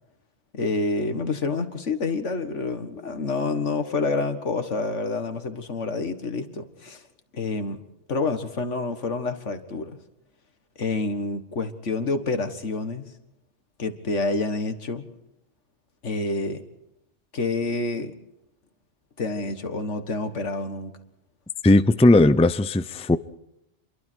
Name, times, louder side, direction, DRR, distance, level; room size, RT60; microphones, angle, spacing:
voice 1, 0.5-7.0 7.3-7.8 8.1-10.0 10.8-13.1 13.8-15.1 16.0-16.6 17.3-18.1 19.2-20.9, left 3 dB, 80° left, 2.1 m, -28 dB
voice 2, 21.6-23.2, left 2 dB, 10° left, 0.5 m, -17 dB
28.5 x 23.0 x 4.6 m
omnidirectional pair, 1.2 m